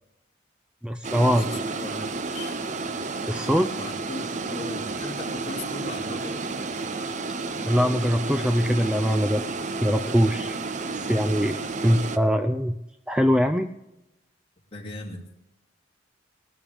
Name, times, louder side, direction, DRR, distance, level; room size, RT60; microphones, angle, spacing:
voice 1, 0.8-1.6 3.3-3.8 7.7-9.5 9.8-10.6 10.9-11.6 11.8-12.8 13.1-13.7, equal, 5° right, 8 dB, 0.4 m, -22 dB
sound 1, 1.0-12.2, right 3 dB, 40° right, 0.7 m, -31 dB
voice 2, 1.5-2.6 3.7-6.4 14.7-15.4, left 2 dB, 30° left, -1 dB, 2.6 m, -38 dB
19.5 x 13.0 x 3.5 m, 0.87 s
head